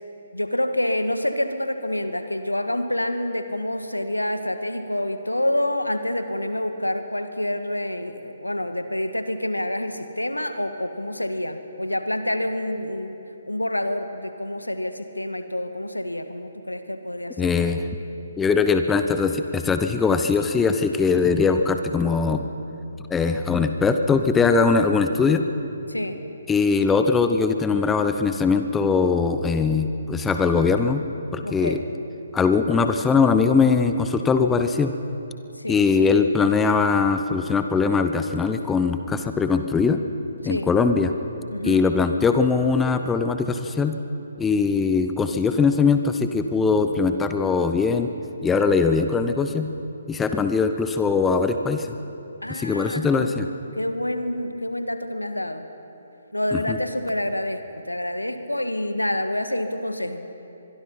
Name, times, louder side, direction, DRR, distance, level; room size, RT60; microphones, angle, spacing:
voice 1, 0.3-13.2 13.5-17.5 25.9-26.2 31.4-31.8 35.6-35.8 40.4-40.7 41.5-41.8 52.4-53.4 53.7-55.6 56.3-60.2, left 1 dB, 90° left, 9 dB, 1.6 m, -27 dB
voice 2, 17.4-17.8 18.4-22.5 23.1-25.4 26.5-31.0 31.3-31.8 32.3-34.9 35.7-40.0 40.4-41.1 41.6-44.0 44.4-48.1 48.4-49.7 50.1-51.9 52.5-53.5 56.7-56.8, left 5 dB, 10° left, 8 dB, 0.9 m, -21 dB
24.5 x 22.0 x 5.7 m, 2.8 s
figure-of-eight pair, 135°, 0 cm